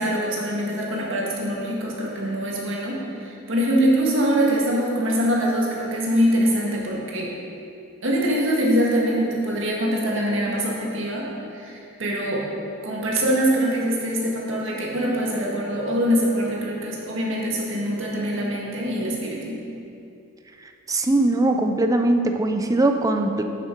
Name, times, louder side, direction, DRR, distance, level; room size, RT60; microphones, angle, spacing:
voice 1, 0.0-7.3 8.0-12.5 12.8-19.6, equal, 60° right, -3 dB, 1.8 m, -23 dB
voice 2, 20.9-23.4, right 2 dB, 15° right, 5 dB, 0.5 m, -20 dB
10.0 x 7.2 x 4.5 m, 2.6 s
head